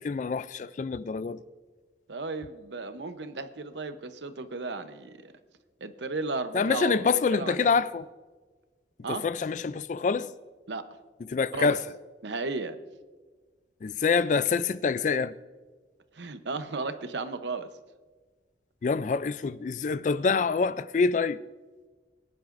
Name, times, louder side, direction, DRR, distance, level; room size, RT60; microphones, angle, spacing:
voice 1, 0.0-1.4 6.5-8.1 9.1-10.3 11.3-11.8 13.8-15.3 18.8-21.4, left 5 dB, 40° left, 0.3 m, -26 dB
voice 2, 2.1-5.3 5.8-7.7 9.0-9.2 10.7-10.8 11.5-11.8 12.2-12.8 16.1-17.7, right 3 dB, 75° right, 0.8 m, -34 dB
22.0 x 10.5 x 2.6 m
head